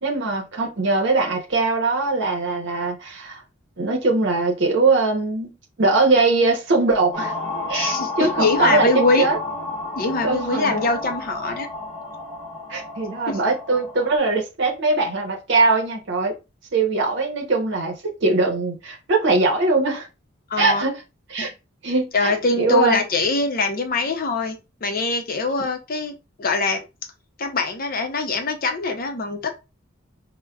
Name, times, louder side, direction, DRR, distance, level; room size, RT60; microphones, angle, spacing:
voice 1, 0.0-3.4 3.8-5.5 5.8-7.3 7.7-8.9 9.2-9.4 10.2-10.9 12.7-16.3 16.7-20.1 20.6-21.0 21.3-21.5 21.8-23.0, right 3 dB, 60° right, 0.7 m, -21 dB
sound 1, 7.1-14.2, left 2 dB, 25° left, 1.1 m, -31 dB
voice 2, 7.7-9.3 10.0-11.7 13.3-13.4 20.5-20.8 21.4-21.5 22.1-26.8 27.4-29.6, left 3 dB, 45° left, 0.6 m, -23 dB
4.8 x 2.1 x 2.3 m
head